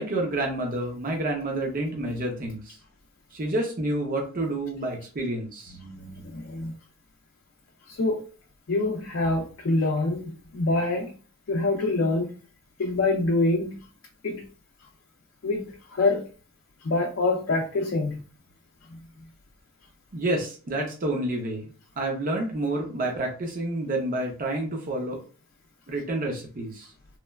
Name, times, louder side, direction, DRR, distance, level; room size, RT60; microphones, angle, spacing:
voice 1, 0.0-2.8 3.3-5.8 20.1-21.7 22.0-25.2 25.9-26.9, right 1 dB, 40° right, 0.6 m, -29 dB
voice 2, 5.7-6.7 7.9-8.3 8.7-11.1 11.5-12.4 12.8-13.8 14.2-14.5 15.4-16.3 16.8-18.2 18.9-19.0, left 2 dB, 60° left, 0.4 m, -26 dB
3.1 x 2.1 x 2.3 m
head